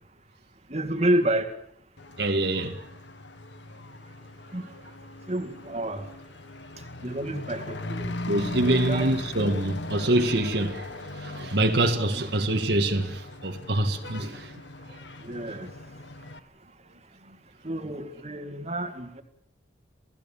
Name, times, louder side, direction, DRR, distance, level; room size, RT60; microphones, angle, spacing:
voice 1, 0.7-1.5 4.5-4.7 5.3-6.1 7.0-8.1 8.6-9.1 12.1-12.2 14.2-14.3 15.2-15.7 17.6-19.2, right 1 dB, 35° right, 2.2 m, -29 dB
Truck / Accelerating revving vroom, 2.0-16.4, left 2 dB, 80° left, 1.5 m, -39 dB
voice 2, 2.2-2.9 8.3-14.6 17.3-17.4, right 1 dB, 65° right, 1.9 m, -25 dB
28.5 x 17.0 x 7.3 m
head